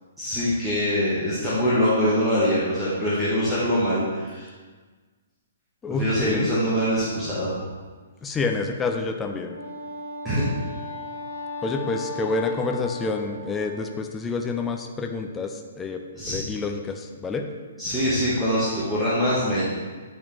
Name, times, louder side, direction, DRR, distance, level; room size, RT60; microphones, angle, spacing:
voice 1, 0.2-4.5 5.9-7.6 10.2-10.5 16.1-16.4 17.8-19.6, equal, 5° right, -12 dB, 1.4 m, -23 dB
voice 2, 5.8-6.5 8.2-9.6 11.6-16.0 16.3-17.5, left 3 dB, 15° left, 4 dB, 0.5 m, -28 dB
Wind instrument woodwind instrument, 9.4-14.0, left 2 dB, 75° left, 1.0 m, -36 dB
8.3 x 4.1 x 3.3 m, 1.4 s
figure-of-eight pair, 120°, 0 cm